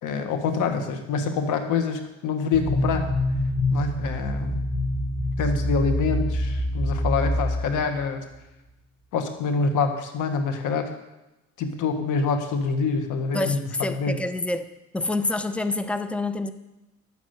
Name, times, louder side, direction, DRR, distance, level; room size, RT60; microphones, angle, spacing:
voice 1, 0.0-3.1 3.7-4.6 5.4-8.2 9.1-10.9 11.6-14.2, left 5 dB, 90° left, 7 dB, 1.6 m, -26 dB
sound 1, 2.5-8.1, left 1 dB, 25° left, 4.6 m, -26 dB
voice 2, 13.3-14.6 14.9-16.5, left 2 dB, 5° left, 10 dB, 0.7 m, -27 dB
11.0 x 7.2 x 8.0 m, 0.99 s
cardioid pair, 90°, 30 cm